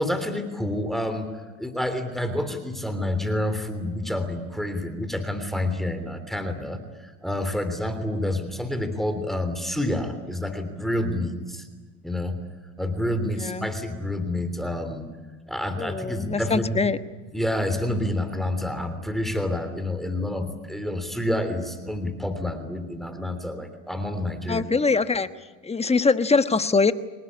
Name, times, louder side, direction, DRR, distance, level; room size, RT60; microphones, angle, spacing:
voice 1, 0.0-11.7 12.0-12.4 12.8-15.1 15.5-16.9 17.3-24.6, left 1 dB, ahead, 9 dB, 3.2 m, -28 dB
voice 2, 13.4-13.7 15.8-17.0 24.5-25.3 25.6-26.9, left 4 dB, 15° left, 11 dB, 1.2 m, -23 dB
25.5 x 19.0 x 9.8 m, 1.4 s
supercardioid pair, 100°, 38 cm